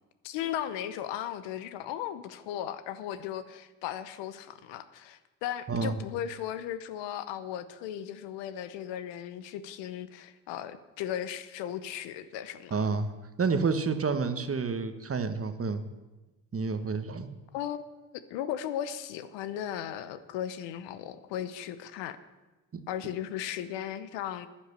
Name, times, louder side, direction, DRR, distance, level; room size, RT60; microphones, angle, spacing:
voice 1, 0.2-12.9 17.5-22.2 22.9-24.5, left 10 dB, 85° left, 13 dB, 0.9 m, -36 dB
voice 2, 5.7-6.0 12.7-13.1 13.4-15.8 16.5-17.3 22.7-22.8, right 4 dB, 30° right, 9 dB, 1.2 m, -29 dB
10.5 x 10.0 x 6.8 m, 1.1 s
supercardioid pair, 70°, 42 cm